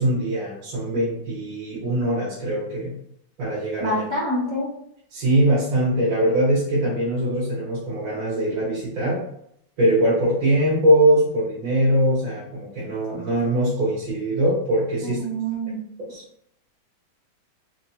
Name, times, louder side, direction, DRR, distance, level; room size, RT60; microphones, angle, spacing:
voice 1, 0.0-2.9 3.4-4.0 5.1-9.2 9.8-15.2 16.1-16.2, right 1 dB, 70° right, -7 dB, 1.7 m, -22 dB
voice 2, 3.8-4.7 15.0-15.8, right 1 dB, 45° right, -6 dB, 0.9 m, -26 dB
4.2 x 2.3 x 2.7 m, 0.71 s
omnidirectional pair, 2.2 m